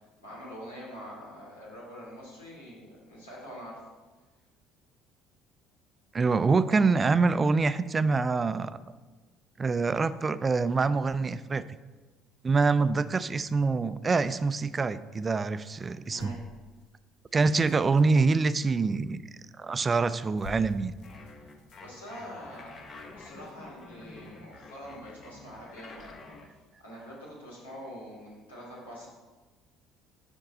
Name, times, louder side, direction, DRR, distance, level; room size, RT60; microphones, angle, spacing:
voice 1, 0.0-3.8 16.1-16.4 19.7-19.8 21.8-22.8 23.1-26.4 26.8-29.1, equal, 85° left, -6 dB, 2.4 m, -45 dB
voice 2, 6.1-8.7 9.6-11.6 12.4-16.3 17.3-19.2 19.6-20.9, right 4 dB, 30° right, 14 dB, 0.3 m, -25 dB
sound 1, 16.2-18.2 19.7-19.9 20.2-23.8 24.4-24.5, left 2 dB, 60° left, 0.6 m, -51 dB
sound 2, 21.0-26.5, left 3 dB, 40° left, 1.1 m, -48 dB
6.4 x 5.2 x 5.2 m, 1.3 s
figure-of-eight pair, 55°, 0 cm